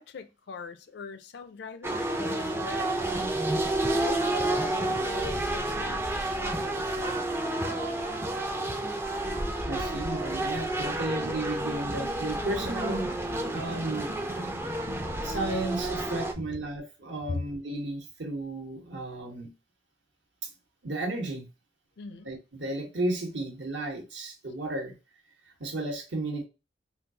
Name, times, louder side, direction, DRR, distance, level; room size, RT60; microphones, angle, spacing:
voice 1, 0.0-3.0 3.9-6.9 9.7-10.2 17.3-17.4 22.0-22.3, left 4 dB, 60° left, 0.4 m, -41 dB
sound 1, 1.8-16.3, right 1 dB, 15° right, 0.4 m, -30 dB
voice 2, 9.7-13.0 13.3-14.1 15.2-19.5 20.8-21.5 22.2-24.9 25.6-26.4, right 2 dB, 70° right, 1.1 m, -33 dB
3.7 x 2.3 x 2.7 m
head